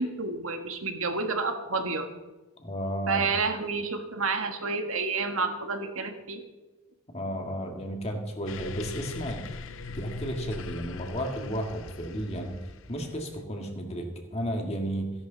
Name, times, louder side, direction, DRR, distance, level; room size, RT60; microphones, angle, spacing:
voice 1, 0.0-2.1 3.1-6.4, right 4 dB, 65° right, 6 dB, 1.6 m, -29 dB
voice 2, 2.6-3.3 7.1-9.4 9.9-12.5 12.9-15.1, equal, 30° left, 3 dB, 2.0 m, -33 dB
sound 1, 8.5-13.4, left 4 dB, 60° left, 0.7 m, -40 dB
16.5 x 11.0 x 4.0 m, 1.1 s
head